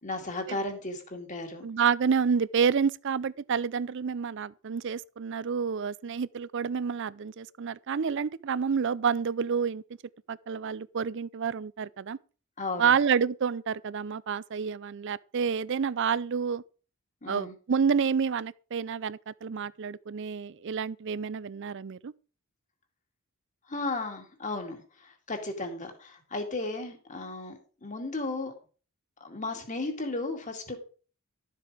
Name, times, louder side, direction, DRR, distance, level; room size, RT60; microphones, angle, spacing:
voice 1, 0.0-1.7 12.6-12.9 17.2-17.6 23.7-28.5 29.2-30.8, left 2 dB, 35° left, 2.2 m, -35 dB
voice 2, 1.6-9.8 10.3-12.2 12.8-16.6 17.3-22.1, right 6 dB, 55° right, 0.5 m, -29 dB
12.0 x 7.6 x 4.9 m
head